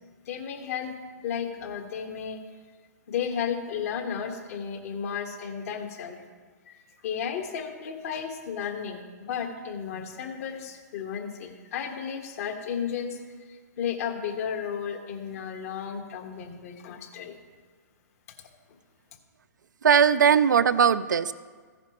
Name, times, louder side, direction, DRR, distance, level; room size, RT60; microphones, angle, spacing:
voice 1, 0.2-0.9 1.2-2.4 3.1-6.2 6.7-6.8 7.0-13.2 13.5-17.4, left 7 dB, 50° left, 5 dB, 1.5 m, -33 dB
voice 2, 19.8-21.3, right 7 dB, 80° right, 14 dB, 0.4 m, -19 dB
15.0 x 10.0 x 3.0 m, 1.5 s
hypercardioid pair, 125°, 10 cm